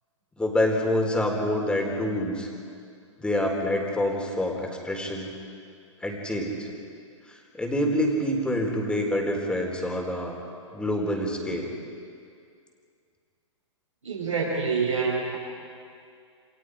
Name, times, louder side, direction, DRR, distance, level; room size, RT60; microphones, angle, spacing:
voice 1, 0.4-2.5 3.2-5.3 6.0-6.7 7.6-10.4 10.7-11.7, left 1 dB, 5° left, 0 dB, 4.3 m, -26 dB
voice 2, 14.0-15.4, right 5 dB, 80° right, -4 dB, 7.4 m, -26 dB
29.0 x 27.0 x 5.1 m, 2.3 s
figure-of-eight pair, 115°, 16 cm